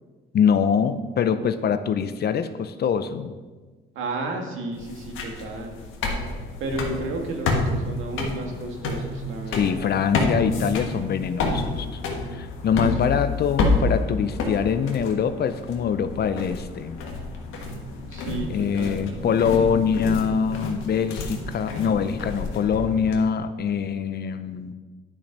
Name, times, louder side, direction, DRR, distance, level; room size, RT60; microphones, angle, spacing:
voice 1, 0.3-3.3 9.5-12.0 12.3-17.0 18.5-24.7, left 7 dB, 55° left, 11 dB, 0.7 m, -24 dB
voice 2, 3.9-5.8 6.6-9.9 13.1-13.2 18.1-19.1, right 2 dB, 80° right, 2 dB, 1.7 m, -32 dB
sound 1, 4.7-23.2, left 3 dB, 90° left, 1.5 m, -29 dB
10.0 x 5.3 x 5.9 m, 1.3 s
cardioid pair, 90°, 20 cm